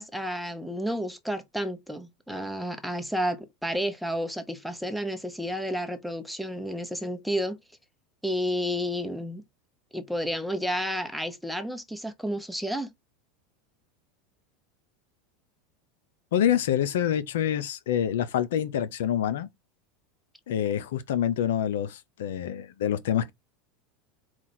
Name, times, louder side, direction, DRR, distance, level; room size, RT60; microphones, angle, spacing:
voice 1, 0.0-7.6 8.2-9.4 9.9-12.9, equal, ahead, 0.8 m, -31 dB
voice 2, 16.3-19.5 20.5-23.3, left 10 dB, 80° left, 0.5 m, -26 dB
4.4 x 2.4 x 4.2 m
hypercardioid pair, 105°, 0 cm